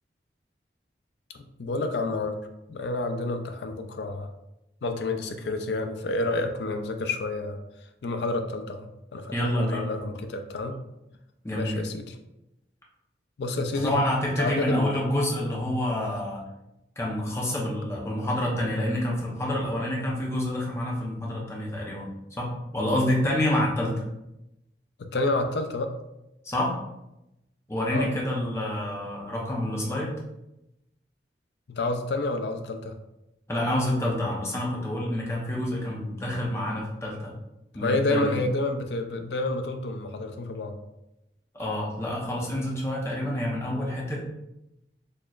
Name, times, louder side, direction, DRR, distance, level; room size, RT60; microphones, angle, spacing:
voice 1, 1.3-2.4 2.7-4.3 4.8-10.8 11.5-12.2 13.4-14.0 14.4-15.0 25.0-26.0 27.9-28.1 31.7-33.0 37.8-40.8, left 2 dB, 70° left, 6 dB, 0.4 m, -29 dB
voice 2, 9.3-9.9 11.4-11.8 13.7-16.4 17.0-24.0 26.4-26.8 27.7-30.1 33.5-37.3 37.7-38.3 41.5-44.2, left 1 dB, 15° left, -3 dB, 0.7 m, -28 dB
4.2 x 3.0 x 2.4 m, 0.90 s
head